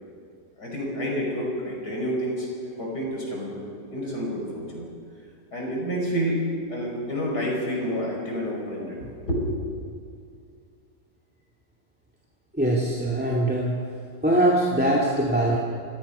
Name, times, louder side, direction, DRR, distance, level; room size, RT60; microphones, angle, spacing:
voice 1, 0.6-2.5 2.8-3.6 3.9-4.9 5.5-9.6, equal, 65° left, -1 dB, 6.0 m, -29 dB
voice 2, 12.5-13.8 14.2-15.6, right 1 dB, 5° right, -4 dB, 2.3 m, -22 dB
28.0 x 17.5 x 5.6 m, 2.2 s
omnidirectional pair, 1.9 m